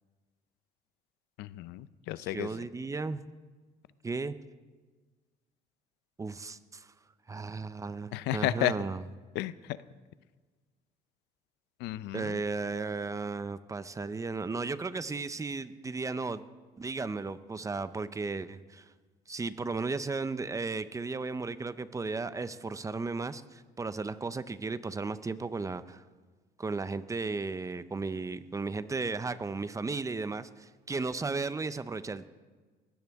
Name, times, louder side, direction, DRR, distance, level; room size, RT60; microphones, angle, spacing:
voice 1, 1.4-2.5 8.1-8.7 9.4-9.5 11.8-12.4, left 15 dB, 90° left, 16 dB, 0.6 m, -32 dB
voice 2, 2.3-3.2 4.0-4.3 6.2-6.9 7.3-9.1 12.1-16.4 16.8-18.9 19.3-26.0 26.6-32.3, right 3 dB, 20° right, 14 dB, 0.6 m, -35 dB
21.0 x 16.5 x 3.6 m, 1.4 s
cardioid pair, 110°, 17 cm